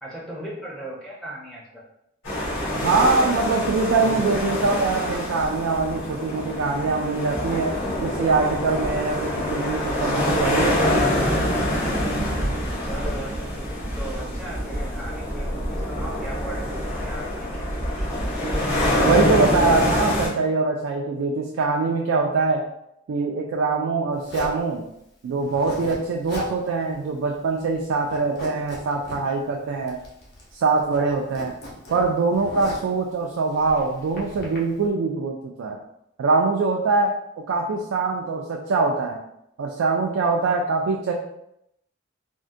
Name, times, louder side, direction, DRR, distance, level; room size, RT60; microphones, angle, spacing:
voice 1, 0.0-1.8 12.8-18.1 18.4-18.7, right 1 dB, 5° left, -5 dB, 0.5 m, -38 dB
sound 1, 2.2-20.3, left 1 dB, 85° left, 1.4 m, -25 dB
voice 2, 2.7-7.8 8.0-11.0 19.0-22.6 23.1-24.8 25.2-30.0 30.5-31.5 31.9-35.8 36.2-37.1 37.5-39.2 39.6-41.1, right 3 dB, 85° right, 1 dB, 0.3 m, -23 dB
Zipper (clothing), 24.3-24.6 25.4-26.0 26.2-26.6 26.9-27.0 27.4-27.8 28.1-29.2 29.9-30.5 30.8-32.9 33.5-34.6, equal, 50° left, 0.7 m, -36 dB
3.6 x 2.1 x 2.5 m, 0.81 s
head